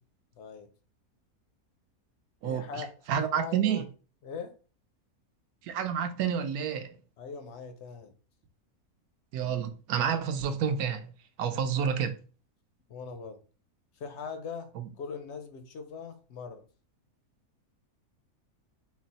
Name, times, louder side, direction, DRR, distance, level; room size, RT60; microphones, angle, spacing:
voice 1, 0.4-0.7 2.4-2.9 3.2-3.8 4.2-4.5 7.2-8.1 12.9-13.4 14.0-14.7 15.0-16.6, left 5 dB, 70° left, 0.7 m, -41 dB
voice 2, 2.4-2.8 3.1-3.8 5.6-6.9 9.3-11.1 11.4-12.2 14.8-14.9, right 8 dB, 80° right, 1.1 m, -29 dB
3.9 x 2.1 x 4.0 m
omnidirectional pair, 1.6 m